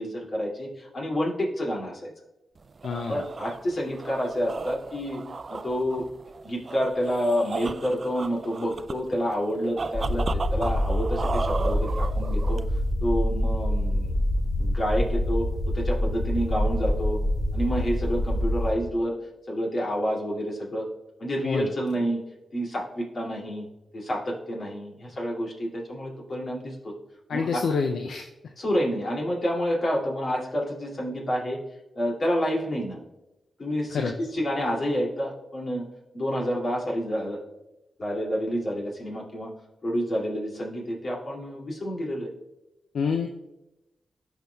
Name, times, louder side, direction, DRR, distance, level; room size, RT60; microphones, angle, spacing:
voice 1, 0.0-2.1 3.1-5.2 5.5-6.0 6.4-12.6 13.0-14.2 14.6-15.5 15.7-17.2 17.5-19.1 19.5-20.9 21.2-22.2 22.5-23.6 23.9-26.9 27.3-27.6 28.6-31.6 31.9-33.0 33.6-35.8 36.1-37.4 38.0-39.5 39.8-42.3, equal, 55° left, -3 dB, 2.4 m, -28 dB
sound 1, 2.6-12.9, right 4 dB, 50° right, 0.3 m, -35 dB
voice 2, 2.8-3.2 21.4-21.7 27.3-28.2 33.9-34.1 42.9-43.3, left 5 dB, 75° left, 4 dB, 0.4 m, -27 dB
sound 2, 9.9-18.7, left 1 dB, 40° left, 1.5 m, -26 dB
13.0 x 4.6 x 2.3 m, 0.97 s
supercardioid pair, 45°, 0 cm